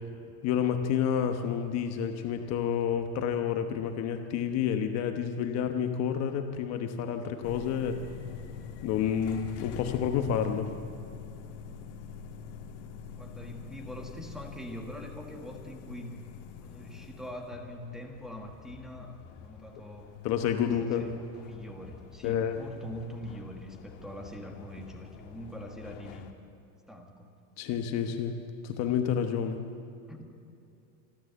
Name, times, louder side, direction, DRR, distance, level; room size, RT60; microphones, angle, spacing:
voice 1, 0.4-8.0 8.8-10.7 20.2-21.0 22.2-22.6 27.6-29.6, left 8 dB, 40° left, 6 dB, 1.1 m, -29 dB
sound 1, 7.4-26.3, left 6 dB, 55° left, 1.8 m, -46 dB
voice 2, 13.2-16.2 16.6-20.1 20.6-26.3 26.9-27.3 30.1-30.3, equal, ahead, 1 dB, 1.4 m, -43 dB
27.0 x 12.5 x 8.0 m, 2.6 s
cardioid pair, 165°, 41 cm